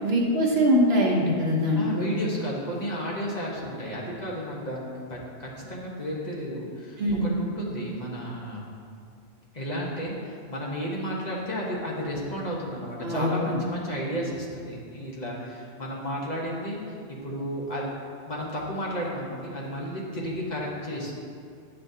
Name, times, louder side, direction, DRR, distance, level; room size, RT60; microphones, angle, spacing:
voice 1, 0.0-2.2 7.0-7.3 13.0-13.6, equal, 65° right, -2 dB, 1.3 m, -23 dB
voice 2, 1.7-8.6 9.5-16.8 17.1-17.8 18.2-21.1, equal, 40° left, -4 dB, 1.1 m, -33 dB
10.0 x 5.6 x 2.7 m, 2.3 s
omnidirectional pair, 1.1 m